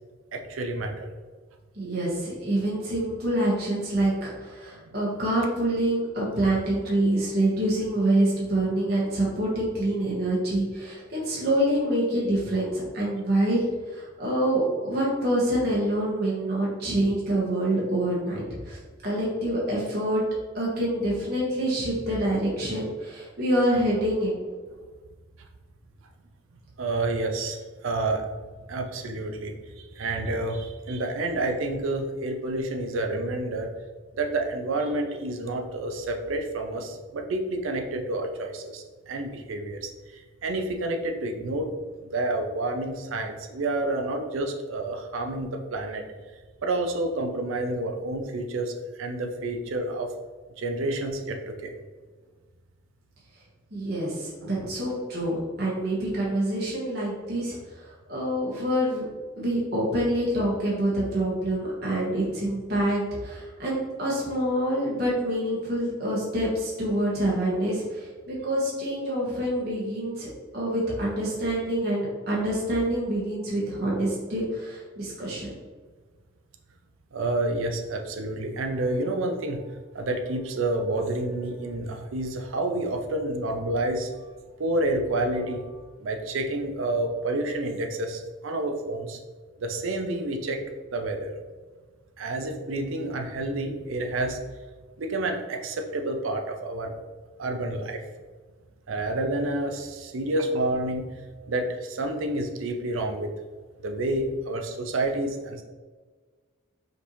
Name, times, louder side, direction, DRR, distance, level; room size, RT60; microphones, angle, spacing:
voice 1, 0.3-1.1 4.8-5.0 26.8-27.6 27.8-28.3 28.7-33.7 34.2-41.7 42.0-46.0 46.6-48.7 49.0-50.1 50.6-51.7 54.4-54.7 77.1-79.6 79.9-84.1 84.6-85.7 86.0-89.2 89.6-90.6 90.9-91.4 92.2-94.4 95.0-96.9 97.4-98.0 98.9-101.0 101.5-103.3 103.8-105.6, right 2 dB, 75° right, 4 dB, 0.5 m, -29 dB
voice 2, 1.7-18.8 19.0-20.2 20.5-24.4 53.7-59.0 59.4-75.5, right 1 dB, 50° right, -5 dB, 1.1 m, -26 dB
5.1 x 2.6 x 3.0 m, 1.4 s
head